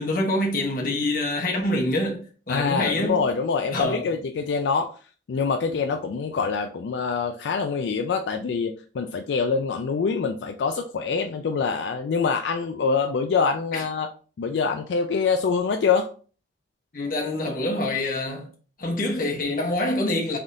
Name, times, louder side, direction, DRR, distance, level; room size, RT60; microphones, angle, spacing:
voice 1, 0.0-3.2 3.7-4.1 13.7-13.8 16.9-18.5 18.8-20.4, left 1 dB, 50° left, 1.0 m, -26 dB
voice 2, 2.5-4.9 5.3-14.1 14.4-16.1, left 5 dB, 85° left, 0.4 m, -25 dB
3.6 x 3.4 x 2.6 m
head